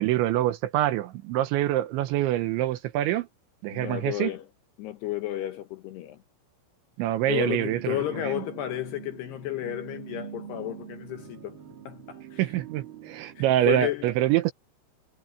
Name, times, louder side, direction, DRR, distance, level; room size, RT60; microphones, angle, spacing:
voice 1, 0.0-3.3 3.6-4.3 7.0-8.3 12.4-14.5, right 13 dB, 75° right, 3.0 m, -25 dB
voice 2, 3.7-4.5 4.8-6.2 7.3-11.6 11.9-12.5 13.4-14.1, left 13 dB, 75° left, 2.5 m, -32 dB
sound 1, 7.2-13.6, right 8 dB, 55° right, 1.4 m, -44 dB
omnidirectional pair, 5.9 m